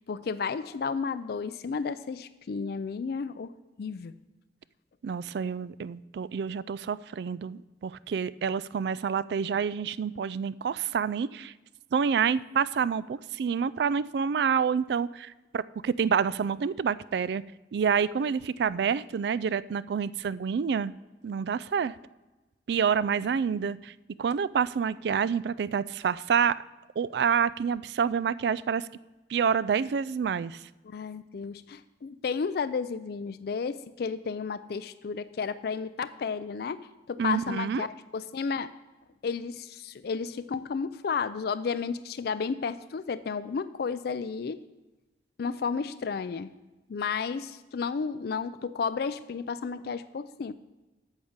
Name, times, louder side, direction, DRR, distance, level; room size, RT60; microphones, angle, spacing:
voice 1, 0.0-3.5 3.8-4.1 30.8-36.8 37.1-37.9 38.1-38.7 39.2-44.6 45.4-46.5 46.9-50.5, left 5 dB, 60° left, 13 dB, 0.4 m, -32 dB
voice 2, 5.0-11.5 11.9-17.4 17.7-20.9 21.2-21.9 22.7-23.9 24.2-26.6 27.0-28.9 29.3-30.6 37.2-37.9, right 6 dB, 65° right, 18 dB, 0.3 m, -28 dB
8.8 x 6.5 x 7.1 m, 1.1 s
head